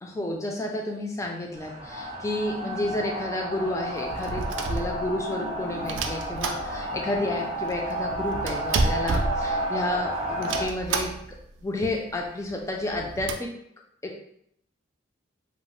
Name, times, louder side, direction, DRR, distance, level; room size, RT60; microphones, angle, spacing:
voice 1, 0.0-11.2 11.6-13.5 14.0-14.2, left 1 dB, 15° left, 1 dB, 0.3 m, -31 dB
sound 1, 1.5-10.6, right 1 dB, 30° right, 0.6 m, -32 dB
sound 2, 4.0-5.4 5.9-7.1 7.4-7.5 7.7-10.0 10.4-11.5 11.8-11.9 12.1-12.3 12.8-13.3, right 3 dB, 70° right, 0.3 m, -30 dB
2.9 x 2.0 x 3.0 m, 0.73 s
head